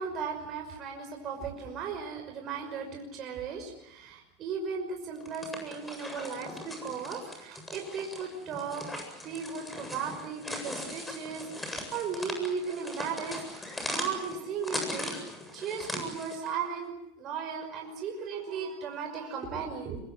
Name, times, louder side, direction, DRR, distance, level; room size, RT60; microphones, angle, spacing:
voice 1, 0.0-8.9 9.2-15.2 15.5-20.0, right 6 dB, 45° right, 3 dB, 5.7 m, -36 dB
sound 1, 5.2-16.5, left 1 dB, 10° left, 7.9 m, -39 dB
25.5 x 22.5 x 8.1 m, 0.84 s
hypercardioid pair, 105°, 0 cm